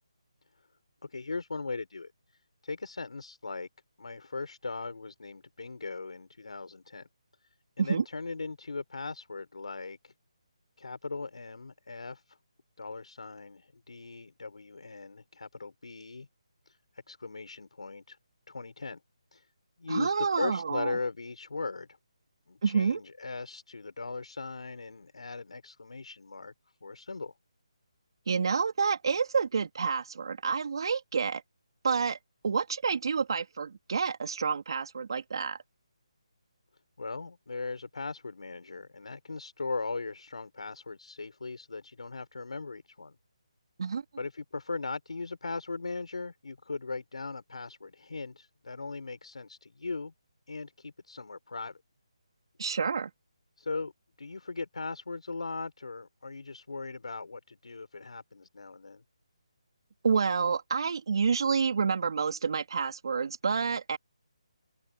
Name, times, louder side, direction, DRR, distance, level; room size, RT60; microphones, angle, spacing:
voice 1, 1.0-2.1 2.6-3.7 4.0-7.1 7.8-10.1 10.8-12.4 12.8-16.3 16.7-16.8 17.1-18.2 18.5-19.0 19.3-19.5 19.8-22.0 22.5-26.5 26.8-27.3 37.0-43.2 44.2-50.1 50.5-51.8 53.6-53.9 54.2-59.0, left 3 dB, 75° left, 5.6 m, -39 dB
voice 2, 19.9-20.9 22.6-23.0 28.3-31.4 31.8-32.2 32.4-35.6 43.8-44.0 52.6-53.1 60.0-64.0, right 5 dB, 50° right, 3.5 m, -28 dB
open air
hypercardioid pair, 170°, 3 cm